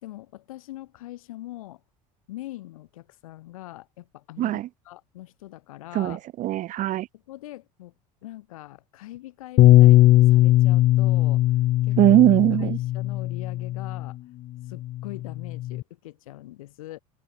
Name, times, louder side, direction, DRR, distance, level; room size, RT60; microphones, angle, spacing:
voice 1, 0.0-1.8 2.3-6.2 7.1-7.9 8.2-11.5 11.8-12.2 12.6-14.2 14.6-17.0, left 16 dB, 85° left, 3.3 m, -42 dB
voice 2, 4.4-4.7 5.9-7.1 12.0-12.8, right 14 dB, 50° right, 0.6 m, -20 dB
Bass guitar, 9.6-14.1 14.9-15.8, left 15 dB, 55° left, 1.1 m, -19 dB
hypercardioid pair, 85°, 17 cm